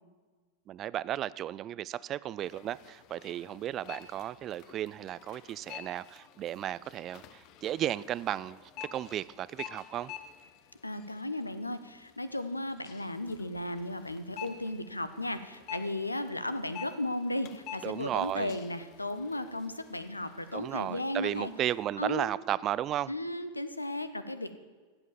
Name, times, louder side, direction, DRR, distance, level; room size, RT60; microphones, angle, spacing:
voice 1, 0.7-8.6 8.9-10.1 17.8-18.5 20.5-23.1, right 12 dB, 30° right, 20 dB, 0.3 m, -34 dB
sound 1, 2.4-21.8, left 10 dB, 40° left, 0.8 m, -50 dB
voice 2, 10.8-21.5 22.0-22.3 23.1-24.5, left 1 dB, 85° left, 12 dB, 0.8 m, -35 dB
14.0 x 8.0 x 7.3 m, 1.5 s
figure-of-eight pair, 90°, 0 cm